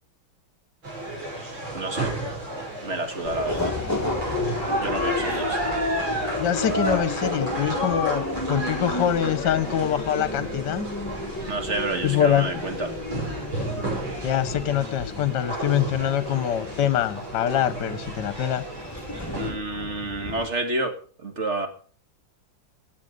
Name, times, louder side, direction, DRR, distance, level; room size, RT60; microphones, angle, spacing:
sound 1, 0.8-19.5, right 1 dB, 70° right, 6.9 m, -32 dB
voice 1, 1.7-2.1 2.8-3.8 4.8-5.6 11.5-12.9 19.4-21.0 21.2-21.7, right 2 dB, 35° right, 6 dB, 2.1 m, -29 dB
Subway metro underground, 3.2-20.5, left 3 dB, 10° left, 1.1 m, -33 dB
voice 2, 6.4-10.9 12.0-12.5 14.2-18.6, left 10 dB, 60° left, 14 dB, 1.5 m, -24 dB
17.0 x 9.2 x 5.2 m, 0.43 s
omnidirectional pair, 2.2 m